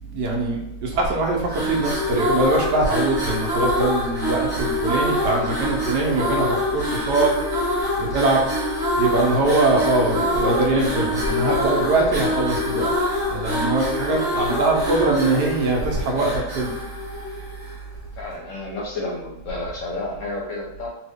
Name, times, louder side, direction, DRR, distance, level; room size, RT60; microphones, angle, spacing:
voice 1, 0.0-8.4 8.9-12.9 13.3-16.7, right 2 dB, 80° right, 0 dB, 1.3 m, -22 dB
sound 1, 1.4-17.9, left 1 dB, 25° right, 0.4 m, -25 dB
voice 2, 14.0-14.6 18.2-20.9, left 2 dB, 60° left, -2 dB, 0.9 m, -31 dB
2.9 x 2.7 x 3.4 m, 0.92 s
omnidirectional pair, 1.8 m